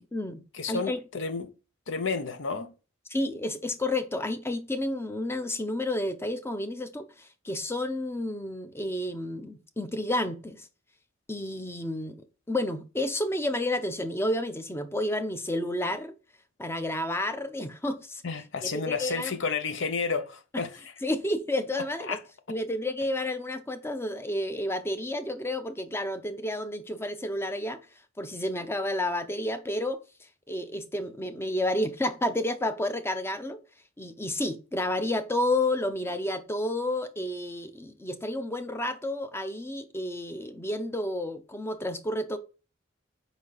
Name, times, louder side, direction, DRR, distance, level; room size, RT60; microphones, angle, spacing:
voice 1, 0.0-0.4 0.7-1.0 3.1-10.7 11.3-16.1 16.6-18.2 18.6-19.3 21.0-22.2 22.5-27.8 28.2-30.0 30.5-33.6 34.0-42.4, left 1 dB, 10° left, 0.6 m, -30 dB
voice 2, 0.5-1.5 1.9-2.7 18.2-20.8 22.0-22.2, left 5 dB, 65° left, 0.7 m, -31 dB
5.1 x 4.1 x 4.7 m
head